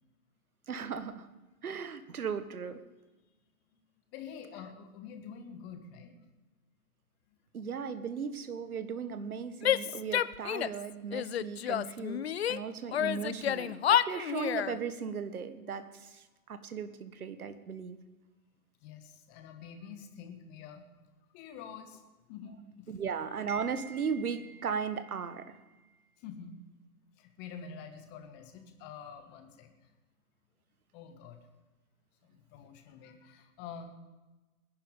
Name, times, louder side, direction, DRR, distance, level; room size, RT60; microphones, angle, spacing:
voice 1, 0.7-1.3 1.6-2.8 7.5-18.0 22.9-25.6, right 6 dB, 70° right, 12 dB, 1.5 m, -37 dB
voice 2, 4.1-6.2 18.8-20.9 21.3-22.0 22.3-22.9 26.2-26.6 27.2-29.7 30.9-31.4 32.2-34.0, left 6 dB, 25° left, 6 dB, 1.5 m, -47 dB
Female speech woman speaking / Yell, 9.6-10.8 11.1-12.6 12.9-14.8, left 10 dB, 45° left, 0.5 m, -29 dB
19.5 x 10.5 x 5.1 m, 1.1 s
hypercardioid pair, 135°, 45 cm